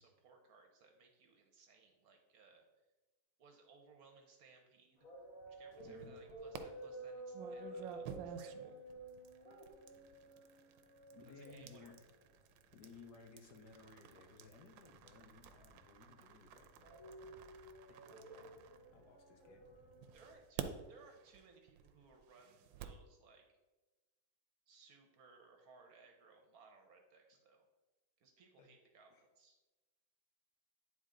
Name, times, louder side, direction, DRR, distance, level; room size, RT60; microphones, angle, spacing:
voice 1, 0.0-2.7 3.4-5.0 5.5-8.8 9.4-9.8 11.4-11.9 20.1-23.4 24.7-27.6 28.2-29.6, right 4 dB, 60° right, 4 dB, 1.1 m, -63 dB
sound 1, 5.0-20.3, right 2 dB, 45° left, 2.9 m, -53 dB
sound 2, 5.7-6.6 7.3-19.4 20.0-23.1, right 9 dB, 80° right, 1.3 m, -52 dB
voice 2, 5.8-6.2 11.1-12.1 12.7-16.7 17.9-18.5 18.9-19.6 28.6-28.7 29.1-29.3, left 4 dB, 65° left, 4 dB, 1.3 m, -59 dB
9.5 x 4.0 x 3.7 m, 1.2 s
omnidirectional pair, 2.0 m